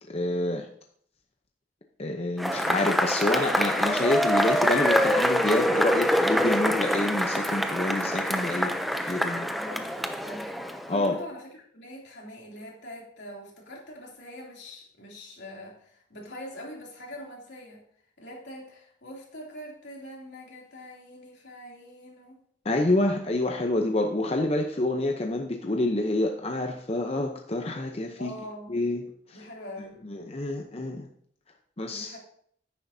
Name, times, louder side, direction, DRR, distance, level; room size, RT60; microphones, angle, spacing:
voice 1, 0.1-0.7 2.0-8.7 9.1-9.5 10.9-11.2 22.6-28.3 28.7-29.0 30.0-31.1 31.8-32.2, left 2 dB, 35° left, 3 dB, 0.7 m, -27 dB
Cheering / Applause / Crowd, 2.4-11.1, equal, ahead, 0.5 m, -25 dB
voice 2, 9.5-17.8 18.2-22.4 28.2-28.8 29.3-30.0 31.9-32.2, equal, 80° left, -2 dB, 2.9 m, -43 dB
10.0 x 9.5 x 2.7 m, 0.62 s
head